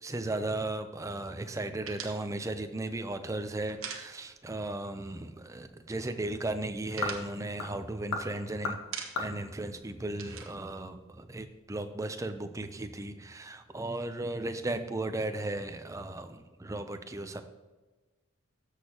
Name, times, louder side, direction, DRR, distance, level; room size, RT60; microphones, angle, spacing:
voice 1, 0.0-8.8 9.2-17.4, right 2 dB, 15° right, 9 dB, 0.5 m, -36 dB
sound 1, 1.9-4.6 4.9-5.1 5.4-6.1 6.4-8.4 8.7-9.5 9.7-11.6, right 6 dB, 75° right, 1.1 m, -44 dB
sound 2, 4.9-10.7, left 3 dB, 75° left, 1.2 m, -40 dB
13.0 x 6.5 x 2.9 m, 1.2 s
head